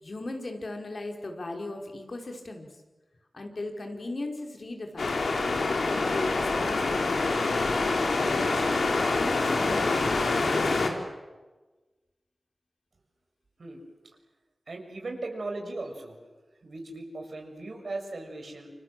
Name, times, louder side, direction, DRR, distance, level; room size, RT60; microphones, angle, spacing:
voice 1, 0.0-2.7 3.3-5.2 5.7-7.3 8.3-10.3, left 2 dB, 60° left, 3 dB, 5.0 m, -37 dB
sound 1, 5.0-10.9, left 3 dB, 90° left, 3.9 m, -26 dB
voice 2, 14.7-16.2 16.6-18.7, right 2 dB, 70° right, 3 dB, 6.7 m, -37 dB
29.0 x 26.0 x 7.7 m, 1.2 s
cardioid pair, 45°, 0 cm